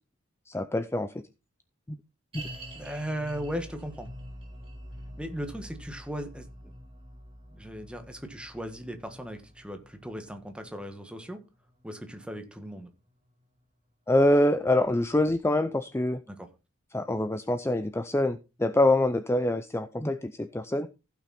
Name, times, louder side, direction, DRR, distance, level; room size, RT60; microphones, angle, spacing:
voice 1, 0.5-1.2 1.9-2.0 2.3-2.4 14.1-16.2 16.9-20.9, left 1 dB, 15° left, 0.5 m, -25 dB
sound 1, 2.3-13.6 13.9-14.0 14.6-14.7, equal, 25° right, 4.2 m, -47 dB
voice 2, 2.7-4.1 5.2-6.7 7.5-11.4 11.8-12.9 16.3-16.5, equal, 5° right, 1.5 m, -37 dB
15.5 x 6.1 x 4.2 m
head